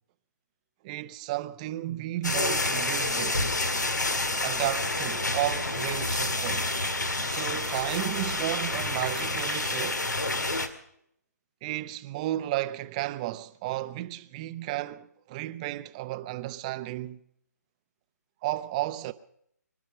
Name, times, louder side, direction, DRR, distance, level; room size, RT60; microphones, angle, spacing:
voice 1, 0.8-3.4 4.4-6.8 7.2-10.0 11.6-17.2 18.4-19.1, right 16 dB, 25° right, 0.8 m, -33 dB
sound 1, 2.2-10.7, left 2 dB, 90° left, 2.1 m, -29 dB
25.0 x 11.5 x 4.9 m
figure-of-eight pair, 145°, 9 cm